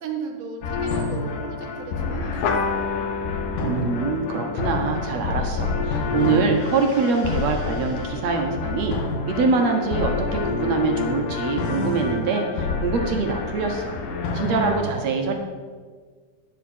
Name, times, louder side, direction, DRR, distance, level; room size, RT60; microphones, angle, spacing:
voice 1, 0.0-2.9, right 5 dB, 40° right, 1 dB, 1.1 m, -36 dB
sound 1, 0.6-14.8, left 4 dB, 90° left, 3.0 m, -28 dB
sound 2, 2.4-7.3, left 5 dB, 70° left, 2.3 m, -31 dB
voice 2, 3.6-9.0 9.3-14.0 14.3-15.3, right 4 dB, 65° right, 3 dB, 2.2 m, -24 dB
11.5 x 10.5 x 4.5 m, 1.6 s
omnidirectional pair, 3.6 m